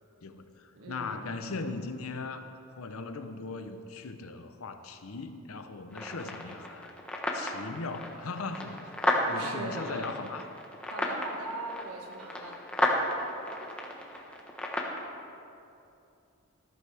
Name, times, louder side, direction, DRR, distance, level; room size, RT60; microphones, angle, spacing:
voice 1, 0.2-6.9 7.3-8.9 9.2-10.5, left 3 dB, 70° left, 9 dB, 0.8 m, -39 dB
voice 2, 0.7-1.3 9.3-10.2 10.9-12.6, right 1 dB, 80° right, 1 dB, 1.7 m, -40 dB
sound 1, 5.9-15.0, left 1 dB, 5° left, 1.1 m, -33 dB
14.0 x 13.0 x 3.4 m, 2.7 s
head